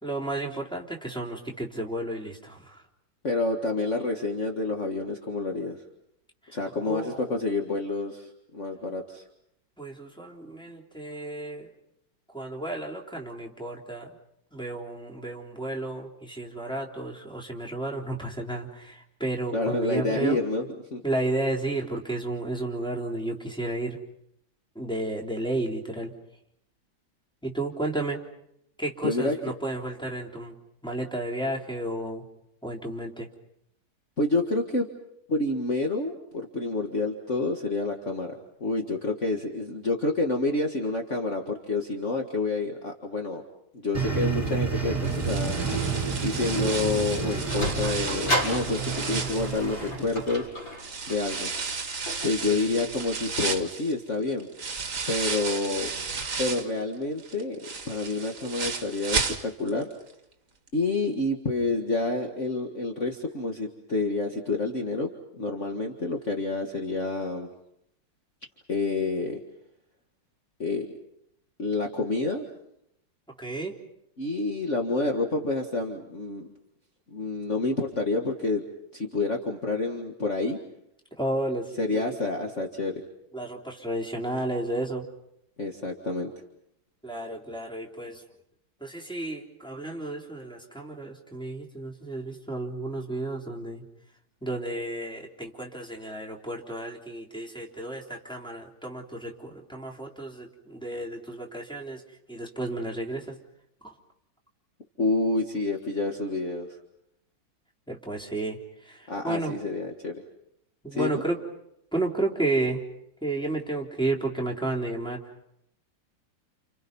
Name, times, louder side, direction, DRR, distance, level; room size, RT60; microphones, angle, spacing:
voice 1, 0.0-2.8 6.5-6.6 6.8-7.3 9.8-11.7 12.3-14.2 14.5-20.4 21.0-24.0 24.8-26.1 27.4-28.2 28.8-30.5 30.8-32.2 32.6-33.3 52.5-52.8 73.4-73.7 81.2-82.2 83.3-85.1 87.0-88.2 88.8-93.8 94.4-102.0 102.3-103.4 103.8-103.9 107.9-109.5 110.8-111.4 111.9-112.8 113.2-115.2, right 2 dB, ahead, 0 dB, 3.6 m, -32 dB
voice 2, 3.2-5.8 6.5-9.2 19.5-20.6 20.9-21.0 29.0-29.4 34.2-34.9 35.3-38.3 38.6-43.4 43.7-45.6 46.2-50.5 51.1-51.5 52.2-54.5 55.1-55.9 56.4-57.6 57.9-59.9 60.7-67.5 68.7-69.4 70.6-70.9 71.6-72.4 74.2-76.5 77.1-78.6 78.9-80.6 81.8-83.0 85.6-86.3 105.0-106.7 109.1-110.2 110.9-111.2, left 3 dB, 40° left, 2 dB, 2.1 m, -28 dB
sound 1, 43.9-50.4, right 5 dB, 25° right, 4.3 m, -30 dB
sound 2, 45.0-50.3 50.8-56.8 57.2-59.8 60.1-60.2 60.7-60.8, right 4 dB, 45° right, 2.0 m, -33 dB
Sliding door, 47.0-53.6, equal, 85° left, 6.2 m, -34 dB
30.0 x 29.5 x 5.5 m, 0.77 s
omnidirectional pair, 2.1 m